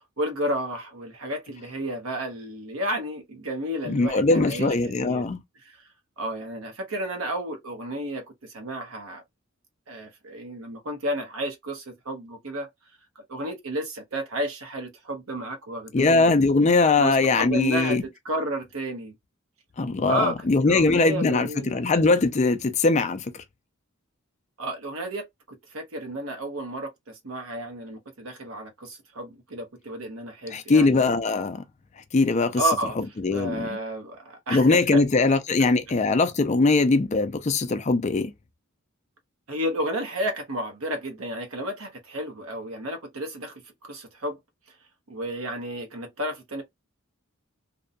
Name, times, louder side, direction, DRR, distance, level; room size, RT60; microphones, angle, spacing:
voice 1, 0.2-5.3 6.2-9.2 9.9-12.7 13.3-16.3 17.0-19.1 20.1-21.8 24.6-31.1 32.6-35.0 36.7-36.9 39.5-44.4 45.1-46.6, right 1 dB, 75° right, 0.9 m, -32 dB
voice 2, 3.9-5.4 15.9-18.0 19.8-23.4 30.5-31.6 32.1-32.6 33.2-33.8 34.5-38.3, left 3 dB, 35° left, 0.4 m, -21 dB
2.6 x 2.2 x 2.5 m
head